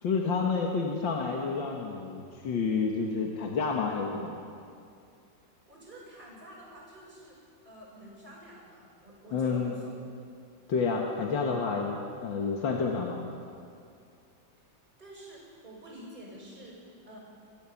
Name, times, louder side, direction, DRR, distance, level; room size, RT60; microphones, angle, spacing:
voice 1, 0.0-4.4 9.3-9.8 10.7-13.2, left 5 dB, 90° left, 0 dB, 2.3 m, -29 dB
voice 2, 5.7-7.4 7.6-9.9 15.0-17.2, right 1 dB, 25° right, -4 dB, 6.1 m, -48 dB
29.5 x 14.5 x 7.2 m, 2.5 s
omnidirectional pair, 2.0 m